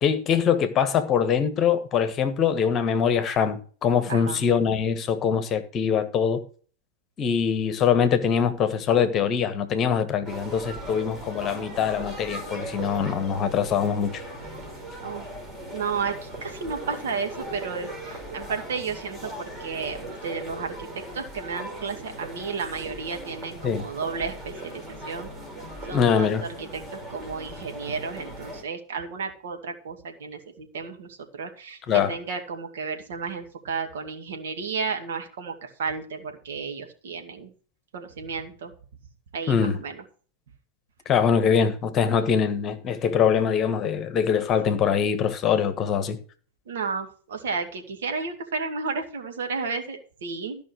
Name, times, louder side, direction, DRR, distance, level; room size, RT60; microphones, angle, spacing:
voice 1, 0.0-6.4 7.2-14.2 23.6-23.8 25.0-25.1 25.9-26.5 31.9-32.1 39.5-39.8 41.0-46.2, left 7 dB, 30° left, 1.4 m, -23 dB
voice 2, 4.1-4.4 15.0-15.3 15.7-25.3 25.9-37.5 37.9-38.7 39.3-40.0 46.7-50.6, right 5 dB, 60° right, 2.2 m, -33 dB
sound 1, 10.2-28.6, right 1 dB, 20° right, 5.1 m, -38 dB
14.0 x 5.5 x 6.3 m
figure-of-eight pair, 90°, 0 cm